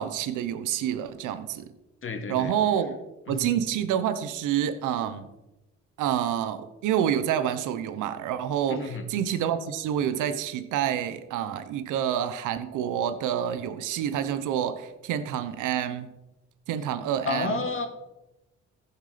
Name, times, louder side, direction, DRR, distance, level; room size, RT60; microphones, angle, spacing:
voice 1, 0.0-1.7 2.3-3.0 3.3-5.3 6.0-16.1 16.7-17.6, right 9 dB, 90° right, 11 dB, 1.0 m, -28 dB
voice 2, 2.0-2.5 3.3-3.5 8.7-9.1 17.3-17.9, left 3 dB, 45° left, 5 dB, 2.3 m, -30 dB
15.0 x 7.2 x 5.1 m, 0.96 s
cardioid pair, 90°, 30 cm